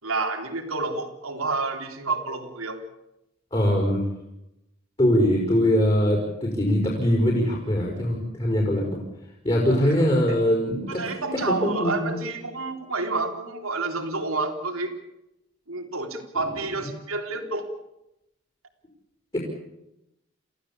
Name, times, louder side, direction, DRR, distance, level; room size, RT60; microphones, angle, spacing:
voice 1, 0.0-2.8 9.8-10.4 10.9-14.9 15.7-17.7, right 3 dB, 90° right, 4 dB, 3.7 m, -29 dB
voice 2, 3.5-4.0 5.0-8.8 9.4-11.0 11.3-12.2 19.3-19.4, equal, 25° left, 0 dB, 5.0 m, -22 dB
28.0 x 15.5 x 8.6 m, 0.88 s
head